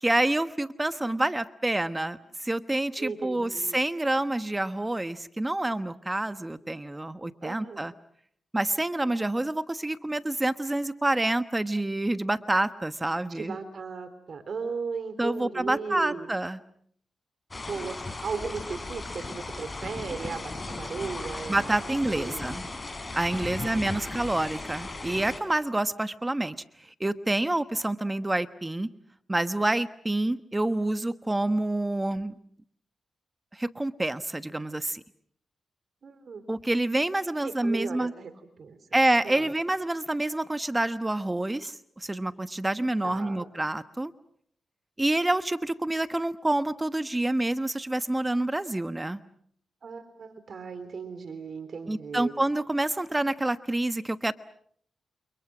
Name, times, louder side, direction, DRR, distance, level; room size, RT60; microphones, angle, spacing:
voice 1, 0.0-7.9 8.5-13.6 15.2-16.6 21.5-22.6 23.1-26.6 27.0-28.9 29.3-32.3 33.5-35.0 36.5-38.1 38.9-44.1 45.0-49.2 51.9-54.3, right 1 dB, 15° right, 12 dB, 1.2 m, -27 dB
voice 2, 3.0-3.8 7.4-7.9 13.1-16.3 17.7-22.5 23.3-24.1 36.0-36.4 37.4-38.3 38.6-38.8 39.2-39.5 43.0-43.5 49.8-52.3, right 5 dB, 60° right, 11 dB, 3.7 m, -37 dB
sound 1, 17.5-25.4, left 2 dB, 30° left, 5.9 m, -37 dB
29.0 x 29.0 x 6.2 m, 0.65 s
cardioid pair, 70°, 0 cm